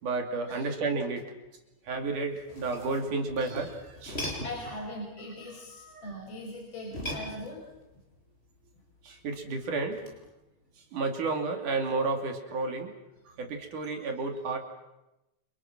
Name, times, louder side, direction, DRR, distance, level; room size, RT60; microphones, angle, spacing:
voice 1, 0.0-1.2 1.9-4.2 5.7-6.2 9.0-10.0 10.9-12.9 13.4-14.6, right 3 dB, 60° right, 4 dB, 4.2 m, -31 dB
sound 1, 2.3-4.8 6.9-7.9 9.9-10.3, equal, 15° left, 7.1 m, -39 dB
voice 2, 4.4-7.7, left 1 dB, 40° left, -1 dB, 6.0 m, -40 dB
29.5 x 29.5 x 6.1 m, 0.96 s
omnidirectional pair, 4.2 m